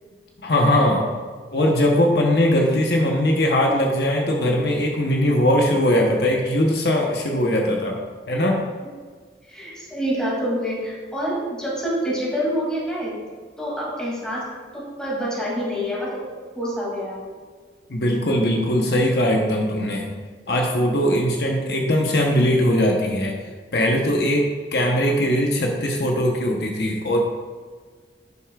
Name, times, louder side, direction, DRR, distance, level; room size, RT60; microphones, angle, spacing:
voice 1, 0.4-1.0 1.5-8.0 8.3-8.6 17.9-20.1 20.5-23.3 23.7-27.2, left 1 dB, 65° left, 0 dB, 1.0 m, -20 dB
voice 2, 9.5-13.2 13.6-14.5 14.7-16.2 16.5-17.3, equal, 5° left, -6 dB, 2.5 m, -27 dB
11.0 x 6.9 x 2.4 m, 1.5 s
head